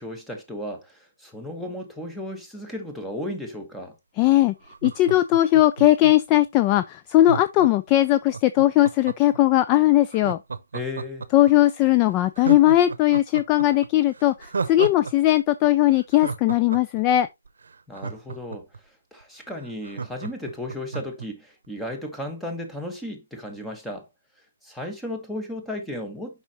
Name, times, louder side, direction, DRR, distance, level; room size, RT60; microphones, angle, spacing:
voice 1, 0.0-3.9 10.7-11.2 17.9-18.7 19.1-24.0 24.6-26.4, left 1 dB, 5° left, 1.3 m, -34 dB
voice 2, 4.2-4.5 4.8-10.4 11.3-17.3, left 14 dB, 20° left, 0.4 m, -19 dB
Laughter, 4.6-6.3 7.2-9.4 10.1-11.5 11.9-12.0 12.3-15.1 15.4-15.5 15.9-18.8 19.2-19.3 19.5-21.3 21.6-21.7, right 5 dB, 75° right, 0.7 m, -33 dB
7.0 x 5.5 x 2.9 m
hypercardioid pair, 155°, 0 cm